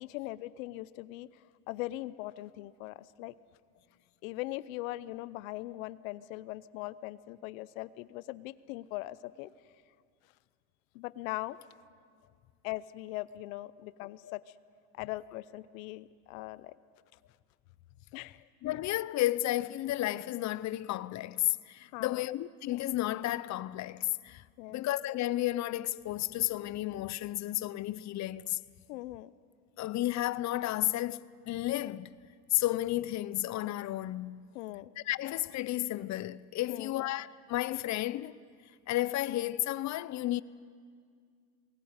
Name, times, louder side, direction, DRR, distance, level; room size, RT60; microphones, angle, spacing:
voice 1, 0.0-3.3 4.2-9.5 10.9-11.6 12.6-14.4 15.0-16.7 18.1-18.5 21.9-22.3 24.6-24.8 28.9-29.3 34.5-34.9 36.7-37.1, left 17 dB, 85° left, 0.7 m, -40 dB
voice 2, 18.6-24.4 24.7-28.6 29.8-32.1 32.5-34.4 35.0-38.4 38.9-40.4, left 15 dB, 45° left, 0.7 m, -32 dB
22.0 x 17.0 x 9.6 m
supercardioid pair, 95°, 39 cm